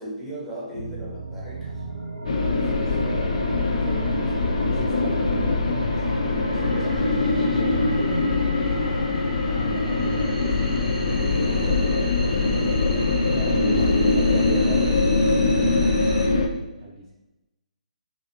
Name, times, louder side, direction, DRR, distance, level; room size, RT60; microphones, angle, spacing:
voice 1, 0.0-1.8 13.7-14.0, right 1 dB, ahead, -8 dB, 0.8 m, -37 dB
sound 1, 0.7-16.3, right 1 dB, 75° right, 0.6 m, -37 dB
voice 2, 1.6-8.5 9.4-12.1 13.3-15.7 16.3-17.1, right 4 dB, 25° right, -4 dB, 0.4 m, -36 dB
sound 2, 2.3-16.5, left 3 dB, 50° left, 0.4 m, -22 dB
sound 3, 6.5-9.5, equal, 90° left, 1.5 m, -36 dB
2.9 x 2.4 x 2.8 m, 1.0 s
figure-of-eight pair, 135°, 4 cm